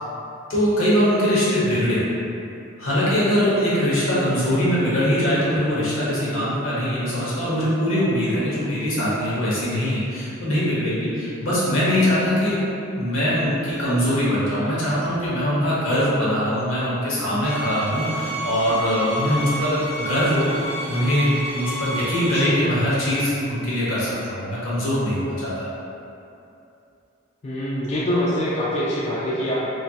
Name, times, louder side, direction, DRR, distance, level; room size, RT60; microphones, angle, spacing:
voice 1, 0.5-2.0 2.8-12.6 12.9-20.5 20.9-25.7, equal, 80° left, -8 dB, 0.9 m, -22 dB
sound 1, 17.4-22.5, right 1 dB, 5° right, 0.7 m, -30 dB
voice 2, 27.4-29.5, equal, 35° left, -7 dB, 0.3 m, -24 dB
3.2 x 2.7 x 2.3 m, 2.7 s
head